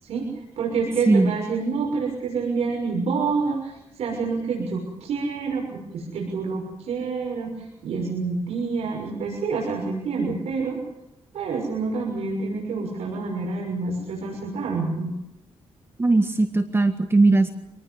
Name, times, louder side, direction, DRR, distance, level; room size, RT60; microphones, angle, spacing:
voice 1, 0.0-10.8 11.3-15.1, right 4 dB, 90° right, -1 dB, 6.6 m, -27 dB
voice 2, 16.0-17.5, right 3 dB, 25° right, 7 dB, 1.6 m, -19 dB
26.5 x 19.5 x 8.1 m, 0.88 s
cardioid pair, 105°, 10 cm